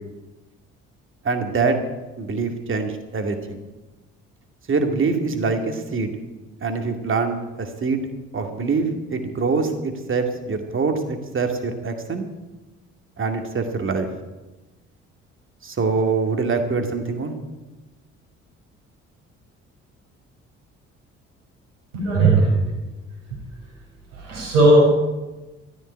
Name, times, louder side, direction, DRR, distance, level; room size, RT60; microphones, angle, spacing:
voice 1, 1.2-1.8 2.2-3.6 4.7-6.1 6.6-8.0 8.3-12.3 13.2-14.1 15.6-17.3, right 4 dB, 35° right, 5 dB, 2.4 m, -24 dB
voice 2, 21.9-22.6 24.1-24.9, right 2 dB, 75° right, -2 dB, 5.3 m, -16 dB
13.5 x 8.3 x 9.8 m, 1.1 s
figure-of-eight pair, 50°, 37 cm